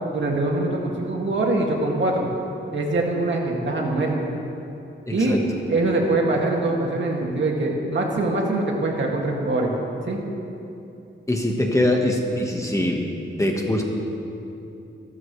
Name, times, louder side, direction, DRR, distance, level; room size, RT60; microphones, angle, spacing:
voice 1, 0.1-2.3 2.7-4.3 5.1-5.4 5.7-9.7 10.1-10.2, right 2 dB, 60° right, -1 dB, 2.3 m, -23 dB
voice 2, 5.1-5.4 11.3-13.0 13.4-13.8, left 1 dB, 15° left, 0 dB, 1.4 m, -22 dB
26.5 x 13.5 x 3.3 m, 2.8 s
wide cardioid pair, 150°, 21 cm